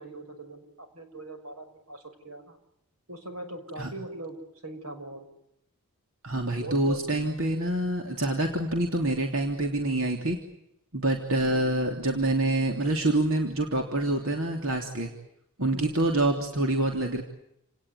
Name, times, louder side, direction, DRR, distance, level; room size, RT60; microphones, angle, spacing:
voice 1, 0.0-2.6 3.1-4.4 4.6-5.3 6.5-7.0 15.7-15.9, right 1 dB, 85° right, 7 dB, 6.0 m, -41 dB
voice 2, 6.2-10.4 10.9-15.1 15.6-17.2, right 1 dB, 65° right, 3 dB, 3.3 m, -26 dB
29.5 x 19.0 x 9.6 m, 0.80 s
head